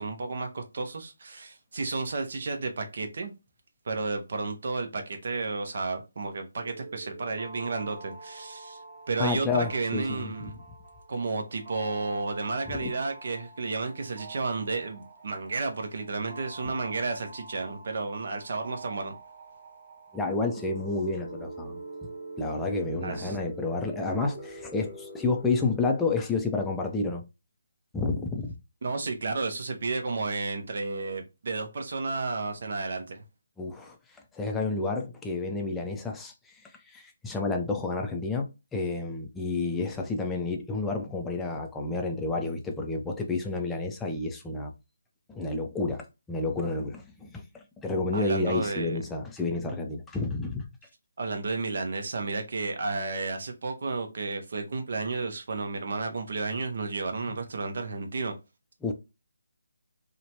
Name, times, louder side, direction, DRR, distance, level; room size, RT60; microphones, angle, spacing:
voice 1, 0.0-3.3 3.9-8.8 9.1-10.6 11.1-19.1 23.0-23.4 28.8-33.2 48.1-49.0 51.2-58.3, right 3 dB, 55° right, 0.7 m, -32 dB
sound 1, 6.6-26.1, right 2 dB, 25° right, 1.0 m, -45 dB
voice 2, 9.2-10.5 12.7-12.9 20.1-21.8 22.4-27.2 27.9-28.5 33.6-34.0 34.3-36.3 36.6-44.7 45.3-50.7 58.8-58.9, left 3 dB, 10° left, 0.4 m, -30 dB
2.8 x 2.2 x 2.8 m
figure-of-eight pair, 155°, 0 cm